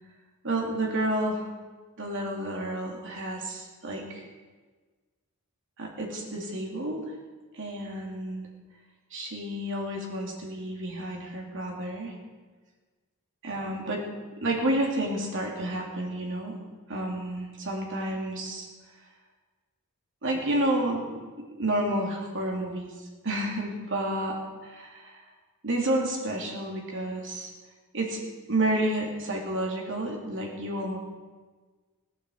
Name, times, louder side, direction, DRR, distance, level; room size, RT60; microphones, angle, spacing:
voice 1, 0.4-1.5 2.0-4.2 5.8-7.0 7.5-8.5 9.1-12.1 13.4-14.0 14.3-16.6 16.9-18.7 20.2-21.2 21.6-24.4 24.6-25.2 25.6-27.5 27.9-28.2 28.5-31.0, right 1 dB, 60° right, 0 dB, 2.8 m, -30 dB
17.5 x 9.1 x 7.9 m, 1.4 s
head